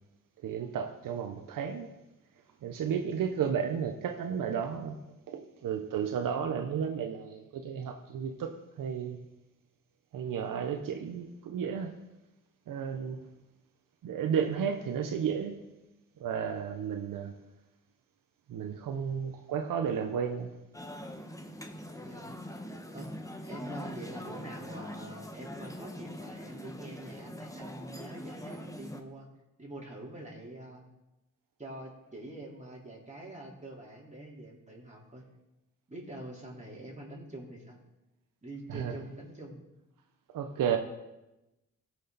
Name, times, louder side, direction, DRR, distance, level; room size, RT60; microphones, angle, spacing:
voice 1, 0.4-1.9 2.6-5.0 5.3-9.2 10.1-11.9 12.7-13.2 14.0-15.6 16.2-17.3 18.5-20.6 38.7-38.9 40.3-40.8, right 7 dB, 85° right, 0.9 m, -33 dB
sound 1, 20.7-29.0, equal, 10° left, 1.4 m, -43 dB
voice 2, 21.9-22.3 22.9-23.1 23.4-29.3 29.6-30.8 31.6-35.2 35.9-37.8 38.4-39.7, right 1 dB, 20° right, 4.0 m, -45 dB
15.5 x 6.5 x 4.1 m
supercardioid pair, 50°, 32 cm